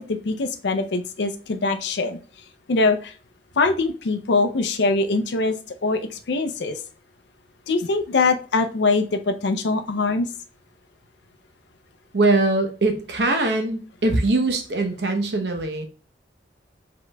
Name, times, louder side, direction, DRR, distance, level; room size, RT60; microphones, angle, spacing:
voice 1, 0.0-2.2 2.7-3.1 3.6-5.6 5.8-6.8 7.7-10.3, left 3 dB, 75° left, 8 dB, 0.5 m, -23 dB
voice 2, 12.1-15.8, right 2 dB, 70° right, 5 dB, 0.8 m, -22 dB
4.9 x 3.8 x 2.2 m, 0.37 s
head